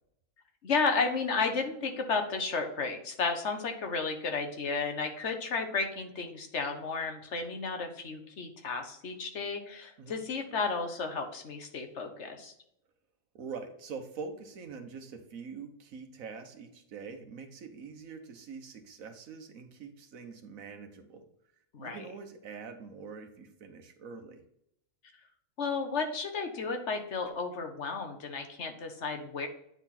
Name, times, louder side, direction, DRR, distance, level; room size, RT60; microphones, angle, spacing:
voice 1, 0.6-12.5 21.7-22.0 25.6-29.5, left 4 dB, 60° left, 5 dB, 1.3 m, -33 dB
voice 2, 13.3-21.3 21.8-24.4, right 5 dB, 85° right, 6 dB, 1.4 m, -44 dB
8.9 x 4.2 x 4.2 m, 0.75 s
omnidirectional pair, 1.4 m